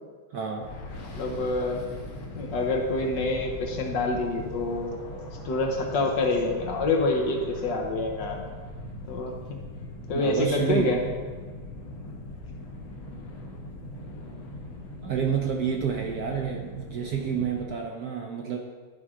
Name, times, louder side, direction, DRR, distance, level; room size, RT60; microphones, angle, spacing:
voice 1, 0.3-0.7 10.1-11.1 15.0-18.6, right 7 dB, 65° right, 2 dB, 1.0 m, -29 dB
sound 1, 0.6-17.6, left 1 dB, 85° left, 1.9 m, -40 dB
voice 2, 1.2-1.8 2.3-4.9 5.4-8.4 9.1-9.6 10.1-11.0, left 2 dB, 65° left, 1 dB, 1.6 m, -27 dB
sound 2, 2.8-8.6, left 1 dB, 25° left, 1.5 m, -50 dB
12.0 x 4.6 x 3.7 m, 1.4 s
omnidirectional pair, 2.2 m